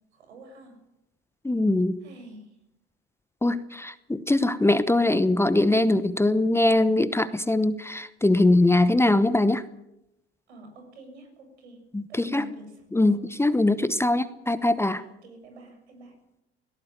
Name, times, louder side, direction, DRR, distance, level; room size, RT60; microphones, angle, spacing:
voice 1, 0.1-0.8 2.0-2.5 10.5-11.8 12.1-13.2 14.1-16.2, right 1 dB, 85° right, 5 dB, 6.8 m, -47 dB
voice 2, 1.4-2.0 3.4-9.6 11.9-12.5 12.9-15.0, left 2 dB, 10° left, 14 dB, 1.0 m, -22 dB
18.0 x 17.5 x 9.3 m, 0.85 s
hypercardioid pair, 75°, 33 cm